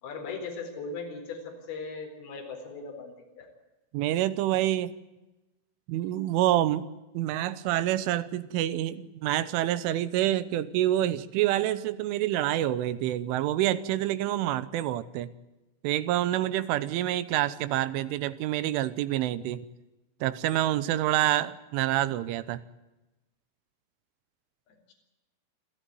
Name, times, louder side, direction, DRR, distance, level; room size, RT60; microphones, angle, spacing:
voice 1, 0.0-3.5 24.7-24.9, left 4 dB, 55° left, 2 dB, 5.8 m, -39 dB
voice 2, 3.9-4.9 5.9-6.9 7.2-15.3 15.8-19.6 20.2-22.6, right 13 dB, 85° right, 15 dB, 3.4 m, -27 dB
26.0 x 14.0 x 9.4 m, 1.0 s
omnidirectional pair, 5.5 m